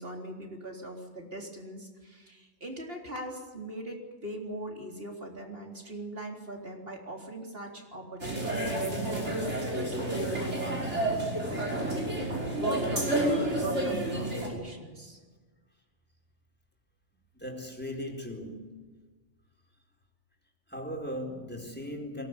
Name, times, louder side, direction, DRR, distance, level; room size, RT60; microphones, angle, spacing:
voice 1, 0.0-11.6 12.5-15.2, right 1 dB, 55° right, 1 dB, 4.1 m, -40 dB
sound 1, 8.2-14.5, right 1 dB, 75° right, 6.1 m, -30 dB
voice 2, 17.3-18.9 20.7-22.3, equal, 10° left, 2 dB, 4.4 m, -38 dB
22.5 x 18.5 x 9.8 m, 1.3 s
omnidirectional pair, 1.2 m